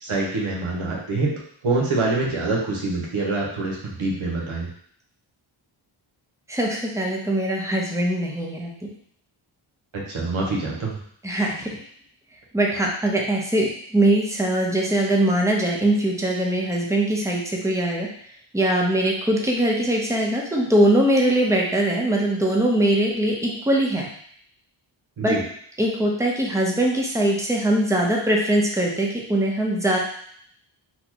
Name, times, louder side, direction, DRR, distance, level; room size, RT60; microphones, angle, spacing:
voice 1, 0.0-1.3 1.6-4.7 9.9-10.9 25.2-25.4, right 3 dB, 75° right, -3 dB, 1.1 m, -25 dB
voice 2, 6.5-8.7 11.2-11.7 12.5-18.1 18.5-24.1 25.2-25.4 25.8-30.0, right 1 dB, 5° right, -1 dB, 0.7 m, -21 dB
4.2 x 2.2 x 2.9 m, 0.63 s
wide cardioid pair, 60°, 49 cm